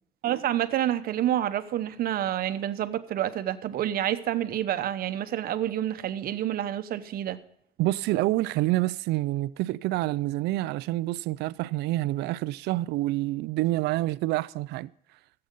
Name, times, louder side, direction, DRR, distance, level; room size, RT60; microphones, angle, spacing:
voice 1, 0.2-7.4, right 11 dB, 60° right, 0.9 m, -28 dB
voice 2, 7.8-14.9, right 17 dB, 80° right, 0.4 m, -27 dB
15.5 x 7.8 x 5.3 m
cardioid pair, 110°, 17 cm